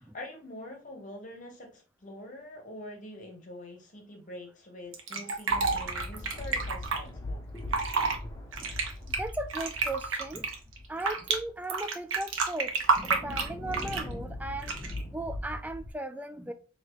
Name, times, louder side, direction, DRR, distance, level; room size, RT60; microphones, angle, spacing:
voice 1, 0.0-7.4, left 1 dB, 40° left, 1 dB, 1.0 m, -45 dB
Fill (with liquid), 4.9-7.0 7.6-8.2 8.5-11.4 11.7-14.1 14.6-15.0, right 4 dB, 85° right, 0.9 m, -29 dB
sound 1, 5.5-11.7 12.2-12.3 12.7-15.9, left 1 dB, 15° left, 0.8 m, -40 dB
voice 2, 9.2-10.5 10.9-12.7 13.0-16.5, right 2 dB, 10° right, 9 dB, 0.3 m, -37 dB
4.7 x 2.9 x 2.9 m, 0.35 s
head